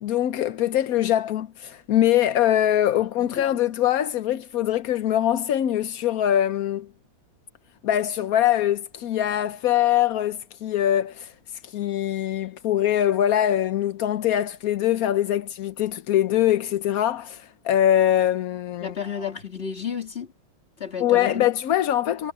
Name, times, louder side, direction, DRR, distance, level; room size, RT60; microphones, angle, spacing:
voice 1, 0.0-6.9 7.8-11.3 11.6-18.9 21.0-22.3, left 11 dB, 65° left, 0.9 m, -23 dB
voice 2, 3.0-3.4 18.8-20.3 20.8-21.4, left 7 dB, 30° left, 3.0 m, -32 dB
omnidirectional pair, 2.2 m